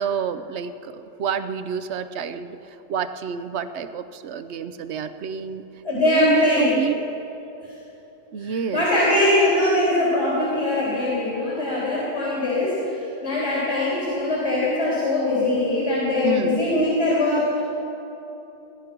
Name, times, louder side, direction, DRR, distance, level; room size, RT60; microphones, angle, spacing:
voice 1, 0.0-5.6 5.9-7.0 8.3-8.8 16.2-16.6, right 7 dB, 70° right, 11 dB, 1.0 m, -28 dB
voice 2, 5.8-6.8 7.6-7.7 8.4-17.6, left 2 dB, 75° left, -7 dB, 3.9 m, -22 dB
18.5 x 11.5 x 6.0 m, 3.0 s
omnidirectional pair, 1.2 m